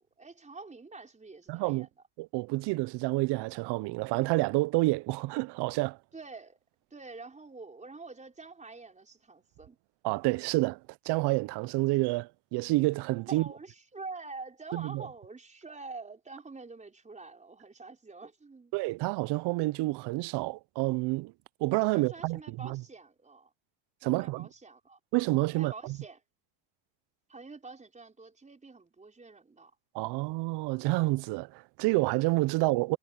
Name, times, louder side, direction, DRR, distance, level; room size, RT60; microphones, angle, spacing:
voice 1, 0.0-1.9 6.1-6.6 6.9-9.8 13.3-18.7 21.9-23.5 24.0-25.0 25.5-26.2 27.3-29.7, right 3 dB, 15° right, 4.8 m, -46 dB
voice 2, 1.5-1.9 2.2-6.0 10.0-10.8 11.1-13.5 14.7-15.0 18.7-21.3 21.6-22.8 24.0-24.5 25.1-26.0 29.9-33.0, right 21 dB, 55° right, 0.5 m, -29 dB
cardioid pair, 140°, 49 cm